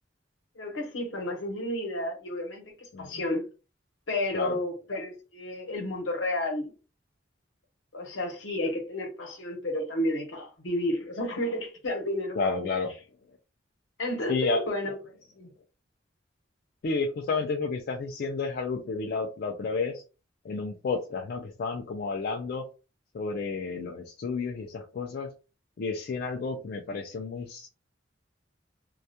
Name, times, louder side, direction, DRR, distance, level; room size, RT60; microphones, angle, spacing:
voice 1, 0.6-3.4 4.1-6.7 7.9-12.7 14.0-15.0 15.4-15.5, left 1 dB, 75° left, 0.8 m, -31 dB
voice 2, 12.3-12.9 14.3-14.6 16.8-20.0 20.4-22.6 23.1-25.3 25.8-27.7, left 4 dB, 50° left, 0.3 m, -31 dB
2.2 x 2.1 x 2.7 m
head